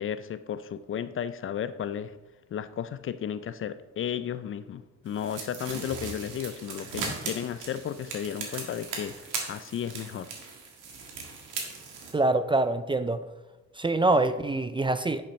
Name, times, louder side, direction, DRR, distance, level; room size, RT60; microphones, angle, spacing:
voice 1, 0.0-2.1 2.5-10.3, left 9 dB, 45° left, 13 dB, 0.4 m, -34 dB
sound 1, 5.1-12.1, right 4 dB, 90° right, 1.7 m, -38 dB
voice 2, 12.1-13.2 13.8-15.2, right 2 dB, 15° right, 11 dB, 0.4 m, -25 dB
10.0 x 5.8 x 3.1 m, 1.1 s
cardioid pair, 90°, 30 cm